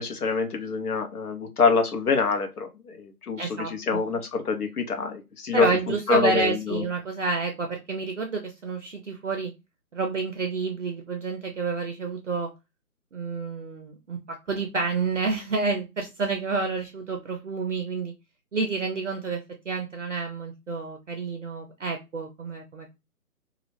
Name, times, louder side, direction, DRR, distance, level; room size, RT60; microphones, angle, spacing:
voice 1, 0.0-6.8, left 4 dB, 70° left, 5 dB, 0.8 m, -26 dB
voice 2, 3.4-4.1 5.5-9.5 9.9-12.5 13.1-14.2 14.5-18.1 18.5-22.9, right 4 dB, 55° right, 4 dB, 0.5 m, -29 dB
2.3 x 2.1 x 3.1 m, 0.24 s
figure-of-eight pair, 155°, 46 cm